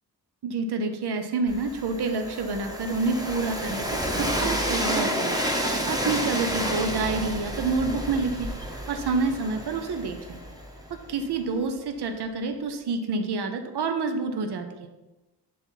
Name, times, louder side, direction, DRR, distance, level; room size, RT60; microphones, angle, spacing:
voice 1, 0.4-5.3 5.9-8.5 8.9-10.4 10.9-14.9, right 4 dB, 75° right, 6 dB, 0.8 m, -28 dB
Train, 1.5-11.3, equal, 10° right, 1.0 m, -30 dB
11.0 x 4.2 x 4.5 m, 1.1 s
wide cardioid pair, 165°, 40 cm